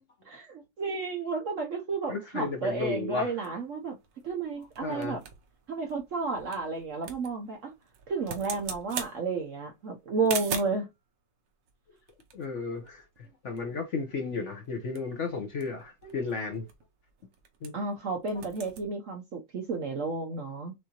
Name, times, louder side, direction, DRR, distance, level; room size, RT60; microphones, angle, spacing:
voice 1, 0.3-4.0 4.2-5.2 5.7-7.7 8.1-10.9 17.7-20.7, right 3 dB, 60° right, 0.9 m, -32 dB
voice 2, 2.1-3.3 4.8-5.2 12.3-16.7 17.6-17.7, left 4 dB, 55° left, 0.9 m, -34 dB
sound 1, 3.4-10.9 11.7-13.3 13.6-13.7 13.9-14.2 14.6-18.0 18.2-18.9, right 7 dB, 75° right, 1.5 m, -42 dB
6.4 x 2.7 x 2.8 m
omnidirectional pair, 2.0 m